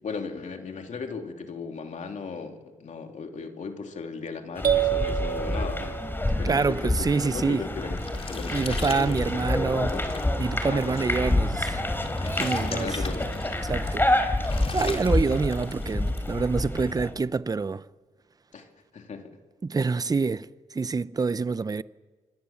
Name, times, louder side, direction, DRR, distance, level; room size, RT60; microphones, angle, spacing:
voice 1, 0.0-6.0 6.4-10.1 10.6-11.1 12.6-13.4 18.5-18.7 18.9-19.4, left 4 dB, 65° left, 3.0 m, -36 dB
sound 1, 4.6-17.1, left 1 dB, 15° left, 3.8 m, -28 dB
sound 2, 4.6-6.5, right 10 dB, 70° right, 3.0 m, -27 dB
voice 2, 6.4-7.6 8.5-9.9 10.4-11.8 12.4-13.0 13.6-14.1 14.7-17.8 19.6-21.8, right 4 dB, 30° right, 0.7 m, -26 dB
sound 3, 7.4-16.3, left 4 dB, 45° left, 3.5 m, -41 dB
26.5 x 21.0 x 7.2 m
cardioid pair, 80°, 14 cm